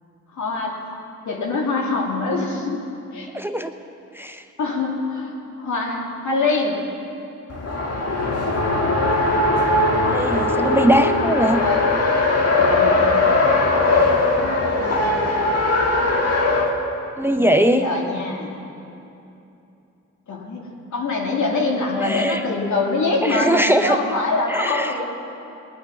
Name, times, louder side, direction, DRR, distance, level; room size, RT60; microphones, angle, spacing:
voice 1, 0.3-0.8 1.2-2.8 3.1-3.3 4.6-6.8 10.7-11.1 12.6-13.0 14.4-15.2 17.3-18.5 20.3-25.1, left 3 dB, 70° left, -1 dB, 2.7 m, -24 dB
voice 2, 3.3-3.7 4.1-4.4 10.0-11.6 17.2-17.9 22.0-22.4 23.2-24.0 24.5-24.9, right 1 dB, 5° right, 7 dB, 0.8 m, -20 dB
Race car auto racing, 7.5-16.7, left 2 dB, 50° left, 2.0 m, -19 dB
19.0 x 11.0 x 5.9 m, 2.8 s
supercardioid pair, 55°, 31 cm